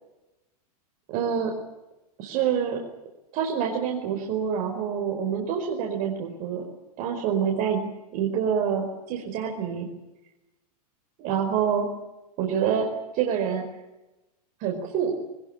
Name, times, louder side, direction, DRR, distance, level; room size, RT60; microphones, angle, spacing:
voice 1, 1.1-1.5 2.2-2.8 3.3-6.6 7.0-9.9 11.2-11.9 12.4-12.9 13.1-13.6 14.6-15.2, right 7 dB, 45° right, 1 dB, 5.0 m, -26 dB
23.0 x 20.5 x 8.9 m, 1.0 s
hypercardioid pair, 130°, 20 cm